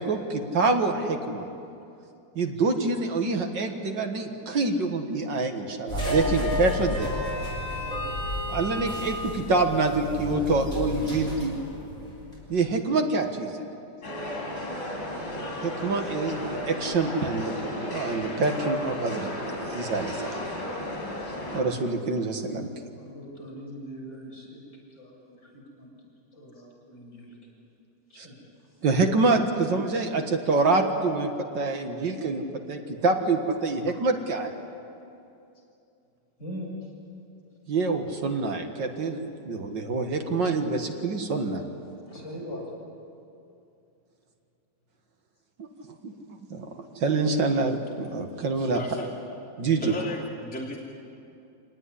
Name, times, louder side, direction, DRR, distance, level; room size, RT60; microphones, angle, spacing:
voice 1, 0.0-1.5 2.4-7.1 8.5-11.5 12.5-13.6 15.6-19.3 19.7-20.4 21.5-22.7 28.2-28.3 28.8-34.5 37.7-39.2 39.5-41.6 45.6-48.8 49.6-49.9, right 3 dB, 75° right, 4 dB, 2.3 m, -26 dB
sound 1, 5.9-12.4, left 1 dB, 20° left, 7.3 m, -31 dB
voice 2, 7.7-8.3 23.0-24.6 24.9-25.9 26.3-27.3 28.1-28.3 36.4-36.7 42.1-42.6 50.0-50.1, equal, 40° left, -4 dB, 7.5 m, -42 dB
sound 2, 14.0-21.6, left 1 dB, 75° left, 6.7 m, -34 dB
voice 3, 48.7-49.1 49.8-50.8, left 2 dB, 5° left, -4 dB, 2.7 m, -34 dB
26.5 x 19.0 x 9.9 m, 2.6 s
omnidirectional pair, 2.0 m